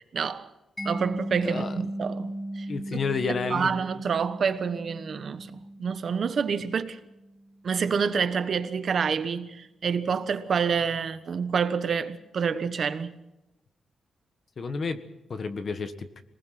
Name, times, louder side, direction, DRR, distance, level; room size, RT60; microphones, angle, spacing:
voice 1, 0.1-0.5 0.8-2.7 3.5-7.0 7.6-13.2, right 6 dB, 45° right, 1.2 m, -28 dB
Mallet percussion, 0.8-7.5, right 1 dB, 5° left, 2.0 m, -37 dB
voice 2, 1.4-1.8 2.7-3.7 14.6-16.2, left 4 dB, 40° left, 1.5 m, -31 dB
26.5 x 20.0 x 6.0 m
wide cardioid pair, 180°, 0 cm